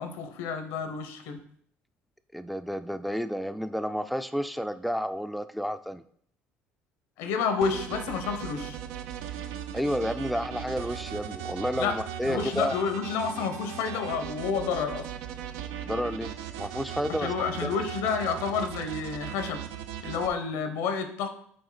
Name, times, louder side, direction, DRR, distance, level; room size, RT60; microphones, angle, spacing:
voice 1, 0.0-1.4 7.2-8.8 11.8-12.0 12.3-15.1 17.2-19.6 20.0-21.3, left 6 dB, 85° left, 8 dB, 0.9 m, -30 dB
voice 2, 2.3-6.0 9.7-12.8 15.8-17.3 17.6-17.8, equal, ahead, 11 dB, 0.3 m, -31 dB
sound 1, 7.6-20.3, right 10 dB, 90° right, 0.5 m, -38 dB
7.8 x 4.1 x 3.9 m, 0.63 s
cardioid pair, 115°, 5 cm